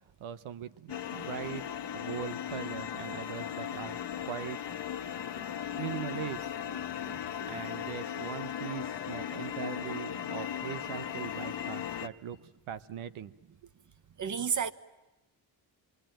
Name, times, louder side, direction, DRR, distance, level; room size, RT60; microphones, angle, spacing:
voice 1, 0.2-4.0 4.3-4.8 5.0-5.2 5.8-6.5 7.4-12.4 12.7-13.3, right 9 dB, 85° right, 1.0 m, -40 dB
sound 1, 0.9-12.1, left 9 dB, 60° left, 1.4 m, -37 dB
voice 2, 5.4-5.8 7.0-7.6 14.2-14.7, right 6 dB, 40° right, 1.4 m, -35 dB
27.0 x 24.0 x 9.0 m
cardioid pair, 95°, 48 cm